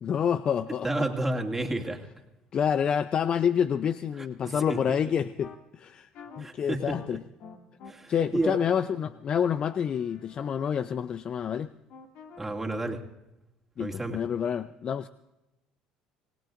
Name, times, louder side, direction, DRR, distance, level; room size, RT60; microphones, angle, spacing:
voice 1, 0.0-0.9 2.5-6.1 6.4-7.2 8.1-11.7 13.8-15.1, left 8 dB, 45° left, 13 dB, 0.5 m, -28 dB
voice 2, 0.8-2.1 4.4-4.8 6.4-7.2 7.9-8.6 12.4-13.0 13.8-14.2, right 2 dB, 15° right, 1 dB, 2.4 m, -31 dB
sound 1, 4.6-4.8 5.4-5.6 6.1-6.4 6.9-7.1 7.4-7.9 8.4-10.6 11.9-12.4, left 6 dB, 65° left, 2.2 m, -48 dB
27.0 x 18.5 x 2.6 m, 0.94 s
supercardioid pair, 85°, 2 cm